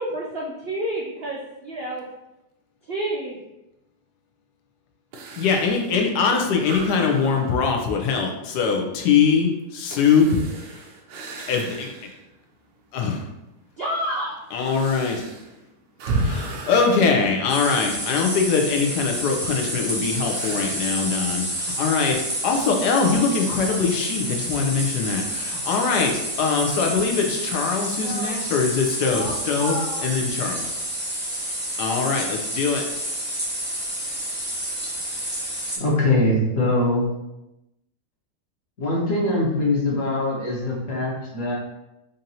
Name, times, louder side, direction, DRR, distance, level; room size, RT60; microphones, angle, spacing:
voice 1, 0.0-2.1 2.8-3.4 13.8-14.3 28.0-28.5 29.1-30.6, right 1 dB, 70° right, -3 dB, 0.5 m, -30 dB
sound 1, 5.1-12.3 12.8-12.9 13.6-18.2 20.2-21.0, right 2 dB, 85° right, 1.2 m, -34 dB
voice 2, 5.4-10.4 10.7-10.8 11.4-11.9 12.9-13.1 14.5-15.3 16.2-30.6 31.8-32.8, left 5 dB, 80° left, 2 dB, 1.2 m, -22 dB
sound 2, 17.5-35.8, right 1 dB, 10° right, 0.5 m, -29 dB
voice 3, 35.8-37.0 38.8-41.5, left 2 dB, 55° left, -4 dB, 1.4 m, -22 dB
5.1 x 2.6 x 2.8 m, 0.93 s
omnidirectional pair, 1.8 m